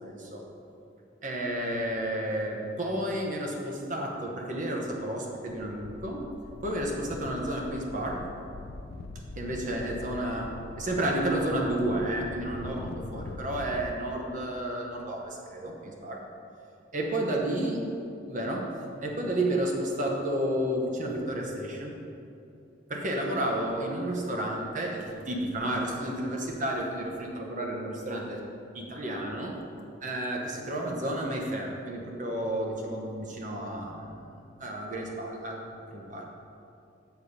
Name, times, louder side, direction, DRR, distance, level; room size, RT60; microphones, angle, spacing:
voice 1, 0.0-0.4 1.2-6.2 6.6-8.2 9.3-16.2 16.9-17.8 18.3-18.6 19.0-21.9 22.9-28.4 28.7-29.6 30.0-34.3 34.6-36.3, right 1 dB, 40° right, 0 dB, 1.0 m, -31 dB
sound 1, 5.2-5.3 5.5-13.9, left 3 dB, 55° left, 0.4 m, -43 dB
6.9 x 4.2 x 6.6 m, 2.6 s
head